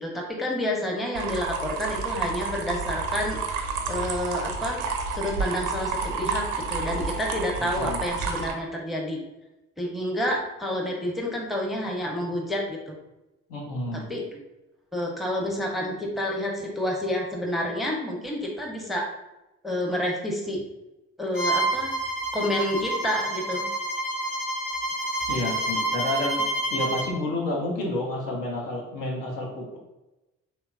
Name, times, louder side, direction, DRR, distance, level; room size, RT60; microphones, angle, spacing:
voice 1, 0.0-3.4 3.9-4.9 5.1-9.2 9.8-12.9 13.9-14.2 14.9-19.1 19.6-20.6 21.2-21.9 22.3-23.7, left 1 dB, ahead, -1 dB, 0.6 m, -29 dB
sound 1, 1.1-8.5, right 4 dB, 70° right, 0.5 m, -30 dB
voice 2, 7.6-8.0 13.5-14.0 25.3-29.8, left 1 dB, 75° left, -2 dB, 0.8 m, -30 dB
Bowed string instrument, 21.3-27.1, right 2 dB, 25° left, 1.0 m, -28 dB
3.0 x 2.2 x 2.2 m, 0.98 s
hypercardioid pair, 40°, 37 cm